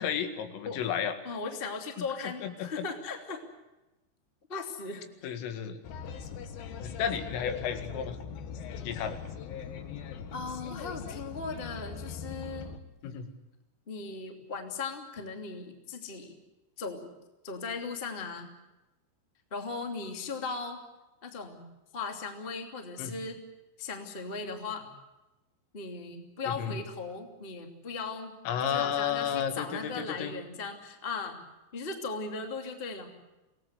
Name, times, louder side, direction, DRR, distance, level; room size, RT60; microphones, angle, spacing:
voice 1, 0.0-1.2 2.0-2.9 5.2-5.8 6.8-8.2 8.8-9.2 13.0-13.3 23.0-23.1 26.4-26.8 28.5-30.3, left 8 dB, 80° left, 8 dB, 4.5 m, -32 dB
voice 2, 1.2-3.4 4.5-5.4 10.3-12.7 13.9-16.3 16.8-17.1 17.4-18.5 19.5-20.8 21.2-21.7 21.9-23.4 23.8-24.9 25.7-28.3 28.6-31.4 31.7-33.1, left 4 dB, 20° left, 4 dB, 1.6 m, -38 dB
sound 1, 5.8-12.8, left 6 dB, 65° left, 2.6 m, -41 dB
26.5 x 18.5 x 8.0 m, 1.0 s
omnidirectional pair, 5.8 m